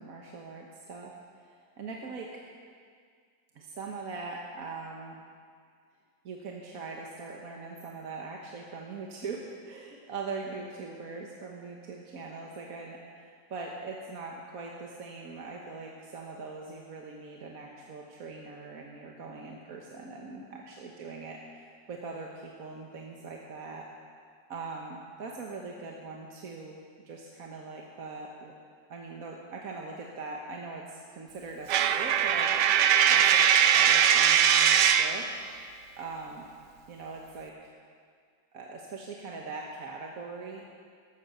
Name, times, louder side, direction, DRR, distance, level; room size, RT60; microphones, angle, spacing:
voice 1, 0.0-2.4 3.5-5.2 6.2-23.8 24.5-26.8 27.0-28.5 28.9-33.2 33.6-35.3 36.0-36.5 36.9-37.7 38.5-40.7, right 4 dB, 55° right, -1 dB, 1.5 m, -41 dB
Coin (dropping), 31.7-35.2, right 8 dB, 75° right, 1.3 m, -21 dB
14.5 x 12.0 x 6.7 m, 2.1 s
omnidirectional pair, 1.9 m